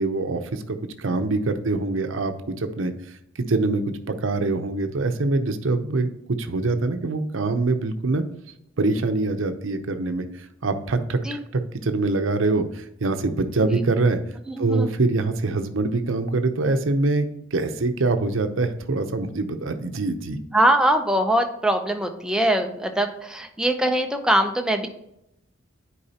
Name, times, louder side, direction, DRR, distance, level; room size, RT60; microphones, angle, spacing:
voice 1, 0.0-2.9 3.4-3.8 4.2-8.2 8.8-10.2 10.6-14.2 14.6-20.4, right 3 dB, 75° right, 8 dB, 0.7 m, -24 dB
voice 2, 14.5-14.9 20.5-24.9, right 1 dB, 5° right, 4 dB, 0.6 m, -22 dB
9.9 x 4.7 x 2.8 m, 0.80 s
head